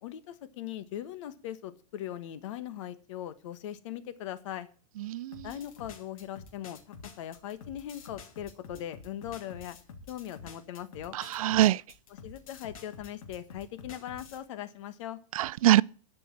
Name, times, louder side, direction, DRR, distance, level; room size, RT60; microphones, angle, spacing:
voice 1, 0.0-4.7 5.4-6.8 7.2-9.8 10.1-11.2 12.2-15.2, left 11 dB, 60° left, 1.4 m, -40 dB
voice 2, 5.0-5.5 11.1-11.8 15.4-15.8, right 14 dB, 80° right, 0.4 m, -24 dB
sound 1, 5.3-14.4, left 4 dB, 75° left, 2.6 m, -48 dB
12.0 x 5.3 x 8.4 m
supercardioid pair, 150°, 18 cm